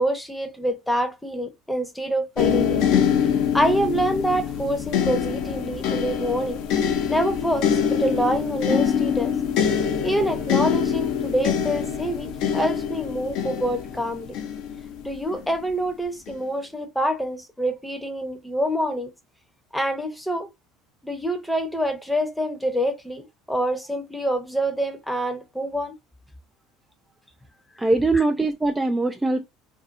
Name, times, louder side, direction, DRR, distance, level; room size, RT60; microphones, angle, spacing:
voice 1, 0.0-2.8 3.5-6.6 7.1-9.3 10.0-14.4 15.0-19.1 19.7-20.5 21.0-25.9 28.1-28.2, right 1 dB, 5° left, 0.8 m, -26 dB
sound 1, 2.4-15.4 16.3-16.4, left 7 dB, 65° left, 0.6 m, -24 dB
voice 2, 27.8-29.4, right 2 dB, 15° right, 0.3 m, -22 dB
2.7 x 2.4 x 2.5 m
hypercardioid pair, 80°, 0 cm